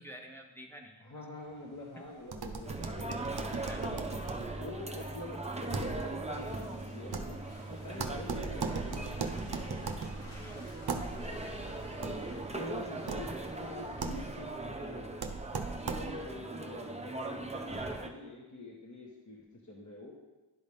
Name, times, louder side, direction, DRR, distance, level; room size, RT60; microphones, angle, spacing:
voice 1, 0.0-1.1 3.1-3.2 3.7-4.3 4.6-4.7 10.4-10.7, equal, 5° left, 2 dB, 1.0 m, -50 dB
voice 2, 1.0-3.2 3.8-4.0 4.4-7.4 7.7-9.9 12.0-15.2 15.8-20.1, left 2 dB, 40° left, -2 dB, 1.3 m, -46 dB
Car passing by / Engine, 1.3-14.5, right 1 dB, 85° left, 2.4 m, -54 dB
sound 1, 2.2-16.4, right 4 dB, 55° right, 0.7 m, -40 dB
sound 2, 2.6-18.1, right 2 dB, 15° right, 0.6 m, -40 dB
11.0 x 4.0 x 3.5 m, 1.2 s
wide cardioid pair, 45°, 47 cm